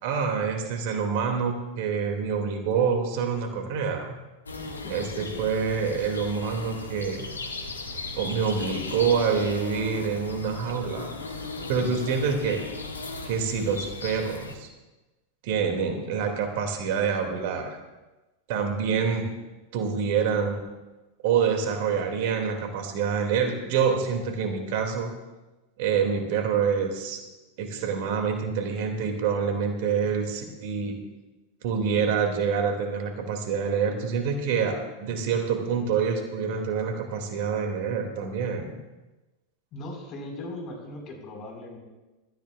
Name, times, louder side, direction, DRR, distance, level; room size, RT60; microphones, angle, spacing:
voice 1, 0.0-4.2 4.9-7.2 8.2-11.1 11.7-12.6 13.2-14.7 15.4-17.7 18.5-19.3 19.7-20.6 21.2-25.1 25.8-27.2 27.6-31.0 31.6-38.7, right 6 dB, 55° right, 4 dB, 2.5 m, -26 dB
sound 1, 4.5-14.6, left 3 dB, 85° left, 1.7 m, -37 dB
voice 2, 4.8-5.4 39.7-41.8, left 1 dB, 40° left, 1 dB, 4.9 m, -39 dB
24.0 x 14.0 x 2.5 m, 1.1 s
figure-of-eight pair, 90°, 0 cm